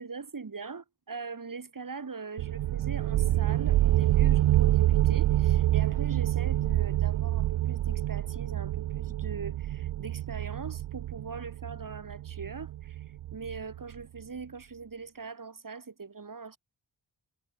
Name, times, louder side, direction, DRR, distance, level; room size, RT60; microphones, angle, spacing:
voice 1, 0.0-13.0 13.3-16.6, right 4 dB, 45° right, 6.5 m, -41 dB
sound 1, 2.4-13.8, right 14 dB, 85° right, 0.6 m, -27 dB
wide cardioid pair, 110°, 44 cm